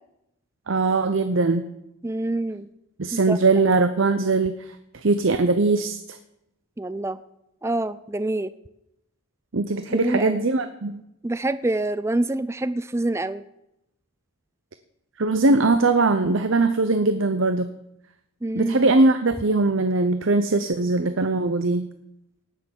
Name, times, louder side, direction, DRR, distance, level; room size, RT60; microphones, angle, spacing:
voice 1, 0.7-1.6 3.0-4.8 5.0-6.2 9.5-11.0 15.2-17.7 18.5-21.9, right 3 dB, 55° right, 10 dB, 0.7 m, -21 dB
voice 2, 2.0-2.7 3.3-3.4 6.8-7.2 7.6-8.5 9.9-10.4 11.2-13.4 18.4-18.8, right 2 dB, 10° right, 14 dB, 0.4 m, -26 dB
18.0 x 6.6 x 7.3 m, 0.84 s
head